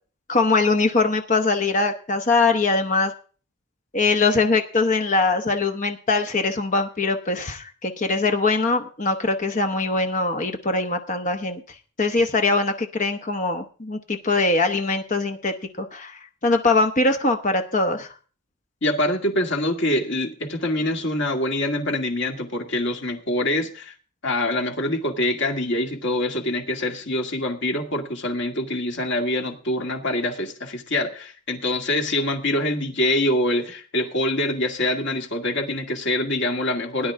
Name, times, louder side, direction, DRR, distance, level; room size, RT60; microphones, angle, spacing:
voice 1, 0.3-3.1 3.9-11.6 12.0-18.1, left 3 dB, 35° left, 5 dB, 0.9 m, -22 dB
voice 2, 18.8-23.9 24.2-37.1, left 1 dB, 55° left, 3 dB, 2.1 m, -25 dB
17.5 x 10.0 x 3.7 m, 0.38 s
head